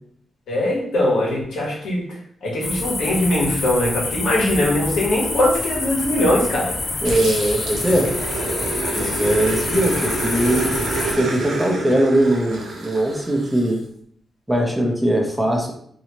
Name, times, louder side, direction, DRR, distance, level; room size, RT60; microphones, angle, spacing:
voice 1, 0.5-2.0 2.4-6.7, left 1 dB, 90° left, -3 dB, 1.2 m, -21 dB
sound 1, 2.6-11.1, left 3 dB, 40° left, 0.5 m, -27 dB
voice 2, 7.0-8.1 9.0-10.7 11.2-13.8 14.5-15.7, right 1 dB, 10° right, 0 dB, 0.7 m, -20 dB
Growling, 7.0-13.7, right 2 dB, 85° right, 0.8 m, -28 dB
3.1 x 2.8 x 2.9 m, 0.64 s
cardioid pair, 110°, 0 cm